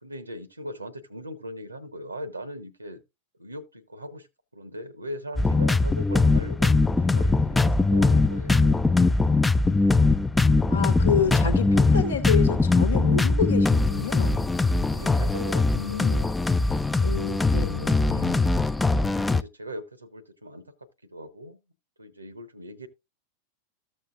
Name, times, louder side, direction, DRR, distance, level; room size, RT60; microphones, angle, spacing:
voice 1, 0.0-3.0 3.4-4.3 4.5-8.9 14.8-16.4 19.2-20.6 21.1-21.6 22.0-22.9, equal, 85° right, 0.9 m, -39 dB
sound 1, 5.4-19.4, left 3 dB, 10° left, 0.4 m, -21 dB
voice 2, 10.7-14.5 15.7-16.2 17.0-18.5, left 7 dB, 70° left, 1.0 m, -29 dB
14.0 x 6.5 x 2.4 m
figure-of-eight pair, 90°, 0 cm